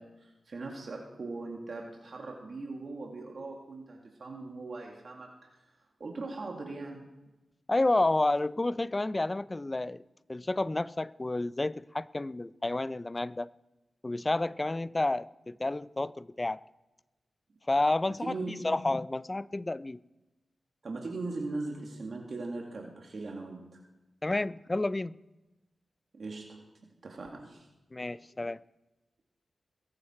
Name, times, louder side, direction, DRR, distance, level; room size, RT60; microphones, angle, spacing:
voice 1, 0.0-5.7 6.0-7.1 18.2-18.7 20.8-23.8 26.1-26.7 27.0-27.7, right 3 dB, 60° right, 0 dB, 2.1 m, -40 dB
voice 2, 7.7-10.0 10.3-13.5 14.0-16.6 17.7-20.0 24.2-25.2 27.9-28.6, left 2 dB, 30° left, 18 dB, 0.4 m, -30 dB
22.5 x 8.7 x 4.4 m, 1.0 s
cardioid pair, 50°, 0 cm